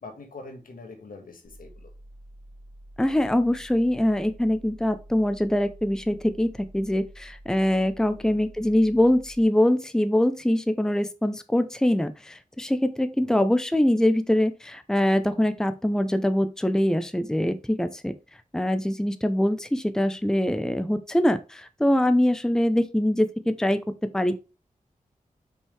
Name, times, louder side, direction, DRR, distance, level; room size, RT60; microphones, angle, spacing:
voice 1, 0.0-1.9 8.2-8.4 13.2-13.4, left 3 dB, 85° left, 1.6 m, -44 dB
sound 1, 1.4-9.4, right 1 dB, 55° left, 1.6 m, -48 dB
voice 2, 3.0-18.1 18.5-23.8 24.1-24.4, left 1 dB, 5° left, 0.6 m, -23 dB
5.5 x 5.3 x 3.3 m
wide cardioid pair, 65°, 14 cm